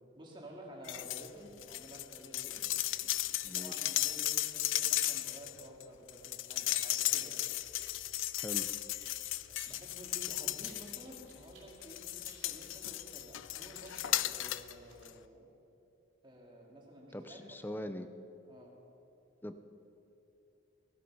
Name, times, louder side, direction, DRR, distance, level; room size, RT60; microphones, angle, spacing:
voice 1, 0.2-2.6 3.5-7.5 9.5-15.5 16.2-17.5 18.5-18.7, right 1 dB, 25° right, -2 dB, 2.3 m, -52 dB
sound 1, 0.8-1.3 1.6-11.4 11.8-14.7 15.1-15.2, left 15 dB, 75° left, 0.4 m, -35 dB
voice 2, 3.4-3.8 8.4-8.7 17.1-18.1 19.4-19.6, left 1 dB, 10° left, 10 dB, 0.5 m, -42 dB
sound 2, 7.5-15.1, right 3 dB, 70° right, 2.9 m, -61 dB
16.0 x 12.5 x 5.5 m, 2.9 s
head